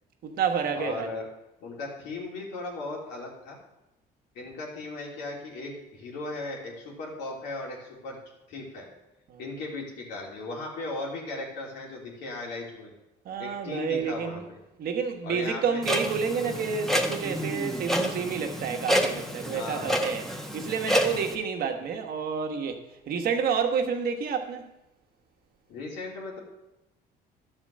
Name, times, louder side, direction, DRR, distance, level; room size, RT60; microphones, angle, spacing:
voice 1, 0.2-1.1 9.3-9.4 13.2-14.4 14.8-20.2 20.5-24.6, right 6 dB, 60° right, 1.3 m, -29 dB
voice 2, 0.7-1.3 1.6-3.6 4.3-8.2 8.5-8.9 9.4-12.9 13.4-14.6 15.2-15.8 19.5-20.3 25.7-26.4, left 2 dB, 90° left, 2.9 m, -37 dB
Clock, 15.8-21.4, equal, ahead, 1.1 m, -29 dB
11.0 x 4.4 x 7.5 m
cardioid pair, 110°, 17 cm